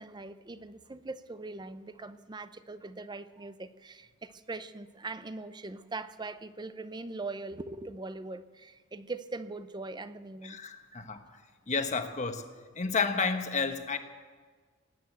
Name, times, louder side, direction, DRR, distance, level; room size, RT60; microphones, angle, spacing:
voice 1, 0.0-10.6 10.9-11.0, right 3 dB, 20° right, 13 dB, 0.6 m, -41 dB
voice 2, 10.4-11.2 11.7-12.4 12.7-14.0, left 4 dB, 35° left, 7 dB, 1.2 m, -31 dB
19.0 x 9.0 x 8.0 m, 1.5 s
head